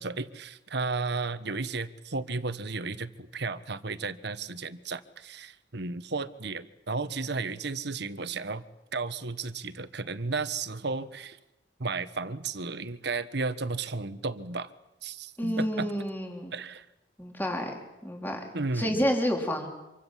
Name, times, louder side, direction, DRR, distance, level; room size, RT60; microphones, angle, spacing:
voice 1, 0.0-8.6 8.9-11.4 11.8-14.7 15.0-15.9 16.5-16.9 18.5-19.0, right 3 dB, 65° right, 13 dB, 1.3 m, -33 dB
voice 2, 15.4-16.5 17.2-17.7 18.0-18.4 18.8-19.7, equal, 10° left, 2 dB, 3.8 m, -29 dB
26.5 x 24.5 x 7.6 m, 0.96 s
head